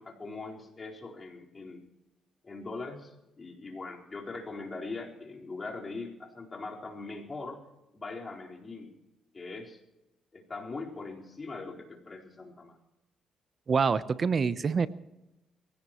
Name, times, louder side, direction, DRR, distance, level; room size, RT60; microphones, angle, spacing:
voice 1, 0.0-1.9 2.4-7.6 7.9-8.9 9.3-9.8 10.3-12.8, left 3 dB, 30° left, -1 dB, 4.3 m, -41 dB
voice 2, 13.7-14.9, right 5 dB, 45° right, 15 dB, 0.8 m, -26 dB
23.0 x 17.0 x 3.1 m, 0.96 s
cardioid pair, 90°, 0 cm